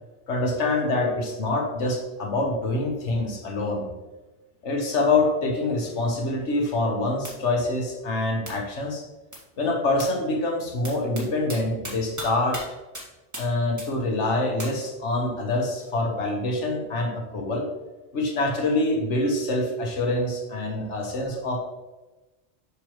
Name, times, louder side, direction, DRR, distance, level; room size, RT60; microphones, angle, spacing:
voice 1, 0.3-3.9 4.6-9.0 9.6-12.6 13.4-17.6 18.1-21.6, left 2 dB, 75° left, 1 dB, 1.5 m, -25 dB
sound 1, 7.2-7.3 8.5-8.6 9.3-9.4 10.0-10.1 10.8-11.2 11.5-11.6 11.8-12.3 12.5-12.6 12.9-13.0 13.3-13.4 13.8-13.9 14.6-14.7, equal, 15° right, 1.7 m, -35 dB
6.8 x 6.0 x 3.0 m, 1.1 s
omnidirectional pair, 1.2 m